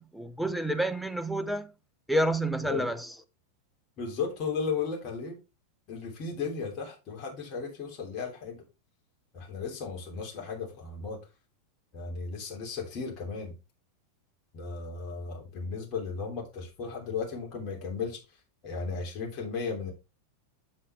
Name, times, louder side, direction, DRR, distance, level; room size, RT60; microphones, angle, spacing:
voice 1, 0.0-1.7 2.1-3.1, right 1 dB, ahead, 0.8 m, -29 dB
voice 2, 4.0-5.4 5.9-8.7 9.3-11.2 11.9-13.5 14.5-19.9, left 5 dB, 35° left, 3.0 m, -35 dB
7.4 x 6.5 x 3.3 m
figure-of-eight pair, 90°, 0 cm